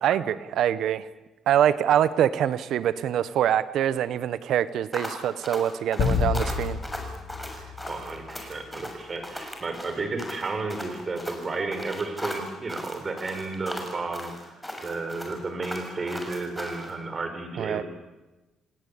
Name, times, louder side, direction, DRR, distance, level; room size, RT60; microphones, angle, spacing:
voice 1, 0.0-1.1 1.5-6.8 17.6-17.8, right 10 dB, 75° right, 15 dB, 1.3 m, -24 dB
sound 1, 4.9-16.9, left 1 dB, 5° left, 6.6 m, -37 dB
sound 2, 6.0-8.6, left 6 dB, 75° left, 5.0 m, -29 dB
voice 2, 7.8-17.8, right 3 dB, 35° right, 7 dB, 5.8 m, -32 dB
28.5 x 18.0 x 8.8 m, 1.1 s
cardioid pair, 90°, 0 cm